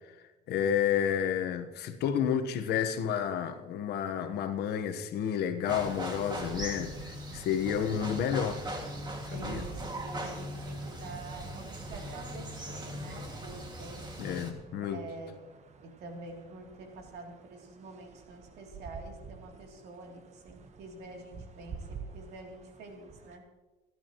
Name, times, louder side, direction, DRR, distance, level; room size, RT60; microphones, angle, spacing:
voice 1, 0.5-6.9 7.3-8.6 9.3-9.6 14.2-15.0, left 8 dB, 75° left, 7 dB, 1.3 m, -30 dB
sound 1, 5.7-14.5, right 1 dB, 25° right, 2.2 m, -40 dB
sound 2, 6.4-23.4, right 5 dB, 45° right, 1.2 m, -50 dB
voice 2, 9.3-14.1 14.8-15.4 15.8-23.4, right 2 dB, 75° right, 1 dB, 3.2 m, -47 dB
25.5 x 11.0 x 3.1 m, 1.2 s
cardioid pair, 110°, 17 cm